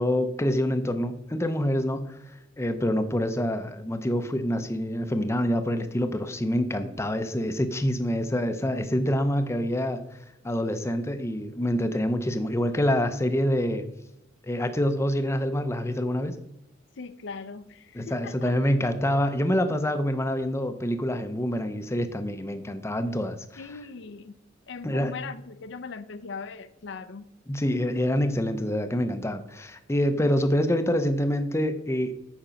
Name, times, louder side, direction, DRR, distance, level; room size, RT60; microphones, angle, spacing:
voice 1, 0.0-10.0 10.4-13.9 14.4-16.4 17.9-23.6 24.8-25.1 27.5-32.1, equal, 15° left, 9 dB, 0.5 m, -26 dB
voice 2, 17.0-18.5 23.6-24.3 24.7-27.3, left 5 dB, 60° left, 12 dB, 0.5 m, -39 dB
8.9 x 5.0 x 5.7 m, 0.88 s
head